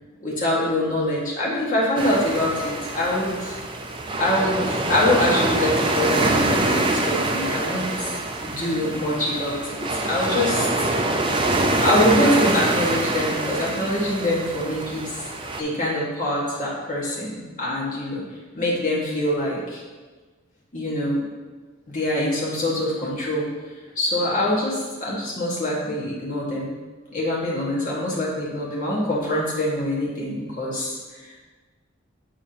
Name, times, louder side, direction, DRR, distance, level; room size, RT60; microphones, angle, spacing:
voice 1, 0.2-3.6 4.2-10.9 11.8-15.3 15.6-18.2 18.5-19.8 20.7-21.2 21.9-23.5 23.9-26.7 27.1-31.0, left 1 dB, 40° left, -5 dB, 1.7 m, -24 dB
sound 1, 2.0-15.6, right 2 dB, 25° right, 0.4 m, -25 dB
8.6 x 4.8 x 2.9 m, 1.4 s
head